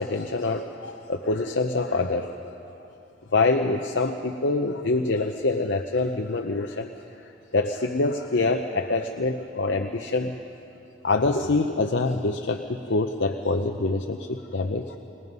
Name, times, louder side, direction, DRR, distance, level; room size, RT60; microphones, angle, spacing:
voice 1, 0.0-2.3 3.3-6.9 7.2-10.4 11.0-15.0, left 3 dB, 65° left, 4 dB, 0.7 m, -25 dB
29.0 x 20.0 x 5.4 m, 2.9 s
head